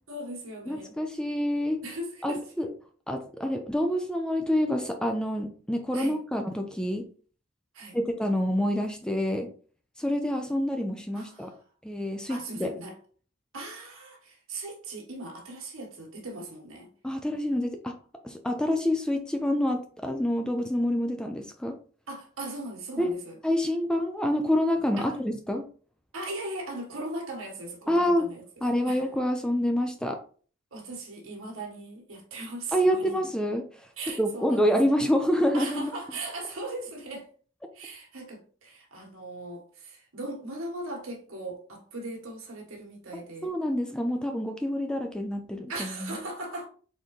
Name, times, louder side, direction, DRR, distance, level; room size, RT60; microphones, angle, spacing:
voice 1, 0.1-0.9 1.8-2.5 5.9-6.2 7.7-8.0 11.1-11.6 12.3-13.0 13.5-16.9 22.1-23.4 25.0-25.2 26.1-28.4 28.8-29.0 30.7-33.1 34.0-34.7 35.5-37.3 37.7-43.5 45.7-46.7, right 2 dB, 80° right, 1.5 m, -38 dB
voice 2, 0.7-1.8 2.2-2.7 3.1-7.0 7.9-9.5 10.0-11.5 11.8-12.7 17.0-17.9 18.2-21.7 23.0-23.1 23.4-25.6 27.9-28.3 28.6-30.2 32.7-33.9 34.2-35.9 43.1-46.2, equal, 5° left, 0.4 m, -27 dB
4.2 x 3.7 x 3.1 m
head